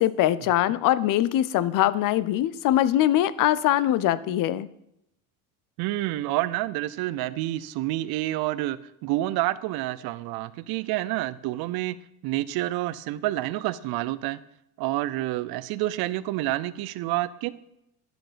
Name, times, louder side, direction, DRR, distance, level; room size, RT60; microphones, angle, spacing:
voice 1, 0.0-4.7, left 13 dB, 45° left, 17 dB, 0.6 m, -22 dB
voice 2, 5.8-12.0 12.2-14.4 14.8-17.5, right 16 dB, 55° right, 16 dB, 0.6 m, -28 dB
10.5 x 6.1 x 5.1 m, 0.80 s
supercardioid pair, 105°, 46 cm